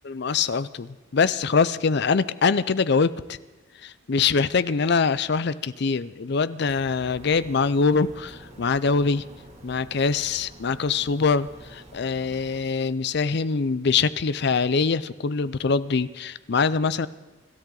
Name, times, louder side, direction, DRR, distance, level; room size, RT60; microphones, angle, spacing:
voice 1, 0.0-3.4 3.8-9.2 9.6-17.1, left 5 dB, 60° left, 16 dB, 0.5 m, -23 dB
sound 1, 6.7-12.6, right 1 dB, 35° right, 2.6 m, -47 dB
25.5 x 13.5 x 3.9 m, 1.2 s
head